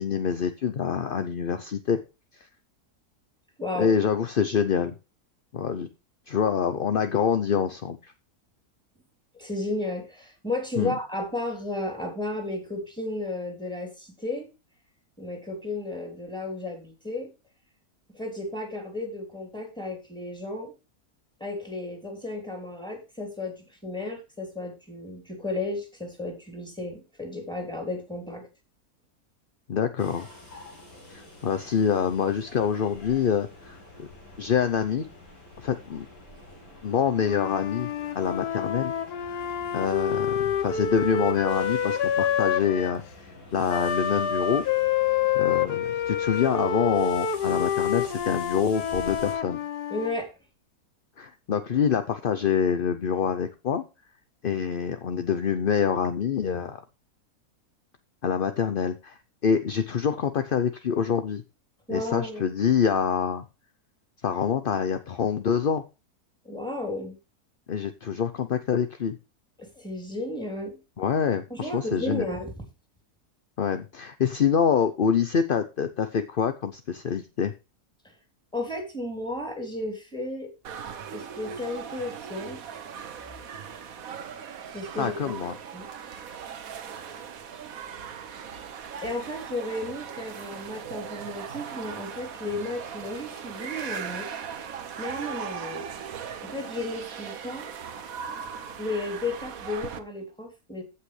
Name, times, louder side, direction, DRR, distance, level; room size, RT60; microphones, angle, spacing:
voice 1, 0.0-2.0 2.3-2.5 3.8-4.9 5.5-5.9 6.3-8.1 10.8-11.0 29.7-30.3 31.1-34.1 34.4-35.1 35.6-36.1 36.8-38.9 39.7-44.6 45.3-49.6 51.2-53.8 54.4-56.8 58.2-61.4 61.9-63.4 64.2-65.8 67.7-69.2 71.0-72.3 73.6-77.5 85.0-85.5, left 7 dB, 50° left, 10 dB, 0.7 m, -26 dB
voice 2, 3.6-3.9 9.4-14.5 15.2-17.3 18.1-20.7 21.4-28.5 49.9-50.3 61.9-62.4 66.4-67.2 69.6-70.8 71.5-72.5 78.0-78.1 78.5-80.5 81.1-82.6 84.7-85.3 85.7-85.9 89.0-94.3 94.6-94.7 95.0-95.8 96.4-97.7 98.8-100.8, left 2 dB, 5° left, 2 dB, 3.4 m, -33 dB
sound 1, 30.0-49.4, left 2 dB, 65° left, 7.0 m, -47 dB
Wind instrument woodwind instrument, 37.2-43.0 43.7-50.2, left 8 dB, 85° left, 1.5 m, -28 dB
sound 2, 80.6-100.0, right 7 dB, 65° right, 1.4 m, -39 dB
15.5 x 5.8 x 3.2 m, 0.28 s
omnidirectional pair, 1.7 m